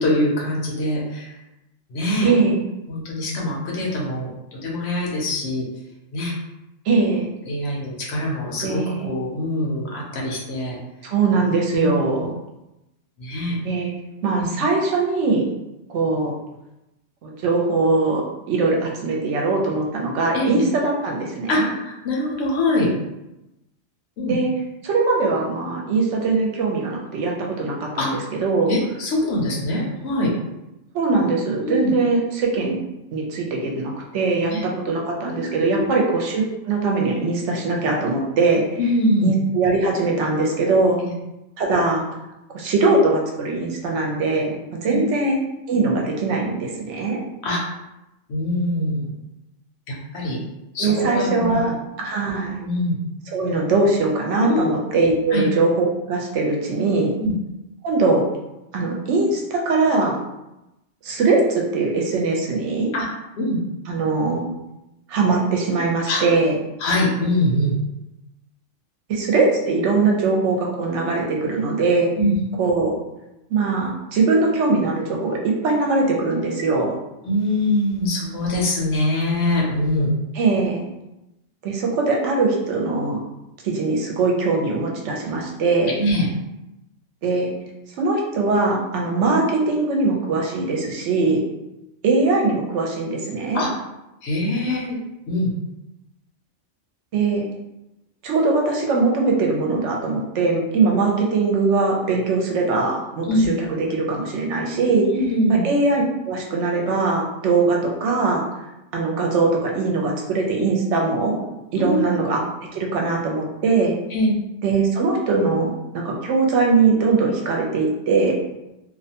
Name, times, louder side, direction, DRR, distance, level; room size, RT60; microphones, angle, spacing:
voice 1, 0.0-1.3 1.9-2.3 2.9-5.6 6.1-6.3 7.5-10.8 11.7-12.0 13.2-13.6 20.3-20.6 21.5-22.9 24.2-24.4 28.0-28.1 28.7-30.3 31.6-31.9 34.5-34.6 35.7-36.0 38.8-39.3 41.0-41.1 44.9-45.0 47.4-47.6 48.3-49.1 49.9-50.4 50.7-51.6 52.6-53.0 54.4-54.8 55.3-55.5 57.2-57.3 62.9-63.1 63.4-63.6 66.1-66.2 66.8-67.8 72.2-72.3 77.2-80.1 86.0-86.3 91.1-91.3 93.5-93.7 94.2-95.0 95.3-95.5 103.3-103.5 105.1-105.6 111.8-112.2 114.1-114.4, left 1 dB, 60° left, -3 dB, 0.8 m, -23 dB
voice 2, 2.2-2.6 6.9-7.3 8.6-9.1 11.0-12.3 13.6-13.9 14.2-15.4 15.9-16.3 17.2-21.7 24.3-24.5 24.8-28.1 28.4-28.7 30.9-32.8 33.1-38.6 39.2-41.0 41.6-42.0 42.5-45.4 45.7-47.2 50.8-52.6 53.3-57.1 57.8-58.2 58.7-60.2 61.0-62.9 63.9-64.4 65.1-66.6 69.1-72.1 72.6-72.9 73.5-77.0 80.3-80.8 81.6-83.2 83.6-85.9 87.2-87.5 88.0-91.4 92.0-93.6 97.1-97.4 98.2-103.3 103.6-105.1 105.5-108.4 108.9-111.4 111.7-112.4 112.7-113.9 114.6-118.3, right 3 dB, 70° right, -1 dB, 0.9 m, -21 dB
2.4 x 2.2 x 2.8 m, 0.93 s
omnidirectional pair, 1.4 m